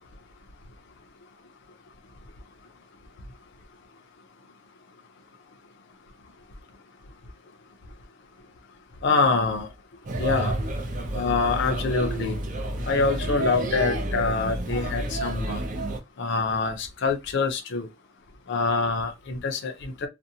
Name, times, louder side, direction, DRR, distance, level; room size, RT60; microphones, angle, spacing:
voice 1, 9.0-9.7 10.2-10.5 11.1-12.4 12.9-15.6 16.2-17.9 18.5-20.1, left 4 dB, 60° left, 0.5 m, -25 dB
Male speech man speaking / Child speech kid speaking / Chatter, 10.0-16.0, right 1 dB, 40° right, 0.6 m, -30 dB
2.6 x 2.1 x 2.8 m
head